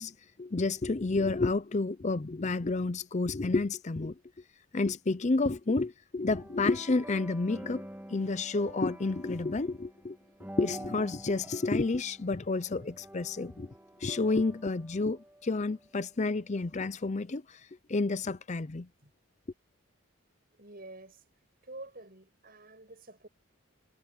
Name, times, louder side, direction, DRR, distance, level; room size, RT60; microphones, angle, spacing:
voice 1, 0.0-4.1 4.7-10.2 10.6-13.7 14.0-17.6 17.9-18.9, left 3 dB, 35° left, 0.5 m, -30 dB
sound 1, 6.3-15.8, right 1 dB, 10° right, 2.2 m, -48 dB
voice 2, 20.6-21.2 21.6-23.3, right 2 dB, 45° right, 7.2 m, -48 dB
head